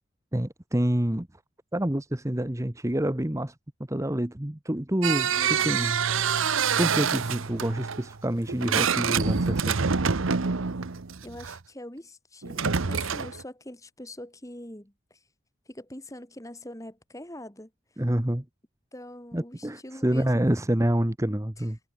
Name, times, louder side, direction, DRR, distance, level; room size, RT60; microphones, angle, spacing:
voice 1, 0.3-1.3 1.7-3.5 3.9-5.3 5.6-6.0 6.8-9.8 18.0-18.4 19.3-21.8, right 1 dB, 15° right, 1.0 m, -27 dB
sound 1, 5.0-11.6 12.4-13.4, right 6 dB, 70° right, 0.9 m, -26 dB
voice 2, 5.3-5.9 11.2-15.2 15.7-17.7 18.9-20.5 21.6-21.7, left 1 dB, 15° left, 2.7 m, -43 dB
head